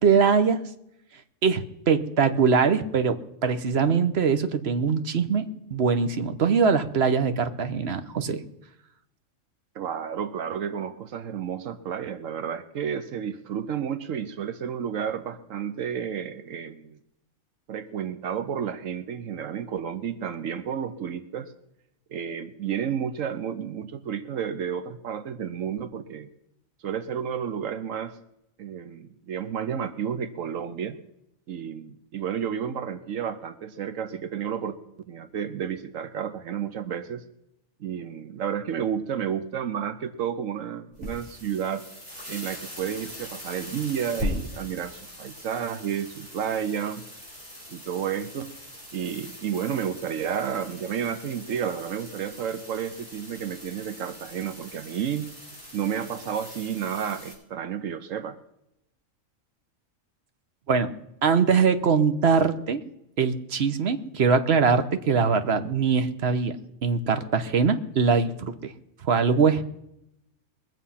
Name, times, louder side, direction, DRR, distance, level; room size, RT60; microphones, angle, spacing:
voice 1, 0.0-0.6 1.4-5.4 5.7-8.4 60.7-60.9 61.2-62.8 63.2-66.6 66.8-68.7 69.0-69.6, right 5 dB, 55° right, 10 dB, 1.1 m, -22 dB
voice 2, 9.7-17.0 17.7-21.5 22.1-26.3 26.8-28.2 28.6-31.0 31.5-34.8 35.1-37.2 37.8-41.9 42.3-47.0 47.7-48.5 48.9-55.3 55.7-58.4, right 8 dB, 80° right, 11 dB, 1.2 m, -31 dB
sound 1, 40.9-57.3, left 1 dB, 30° right, 5.9 m, -40 dB
22.0 x 7.4 x 5.7 m, 0.81 s
omnidirectional pair, 1.4 m